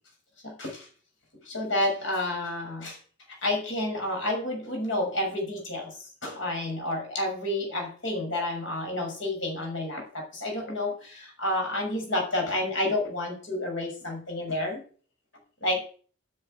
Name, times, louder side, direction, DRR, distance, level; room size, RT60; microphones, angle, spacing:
voice 1, 0.4-0.9 1.4-3.0 3.4-14.8 15.6-15.8, left 1 dB, 65° left, 1 dB, 6.5 m, -30 dB
9.8 x 7.7 x 9.2 m, 0.41 s
head